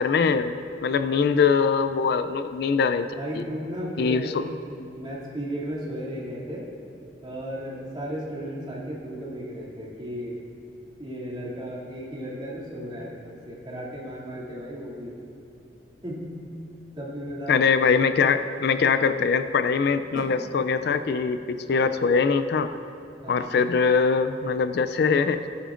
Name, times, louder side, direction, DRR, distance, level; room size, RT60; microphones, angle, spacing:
voice 1, 0.0-3.1 3.4-3.5 4.0-4.4 17.5-22.7 23.3-25.4, left 5 dB, 60° left, 10 dB, 0.4 m, -22 dB
voice 2, 3.1-4.3 4.7-6.7 7.2-10.4 11.0-15.1 16.0-16.4 16.9-17.6 20.1-20.2 23.2-23.5, equal, 30° right, -6 dB, 2.5 m, -35 dB
18.5 x 10.0 x 2.5 m, 2.6 s
head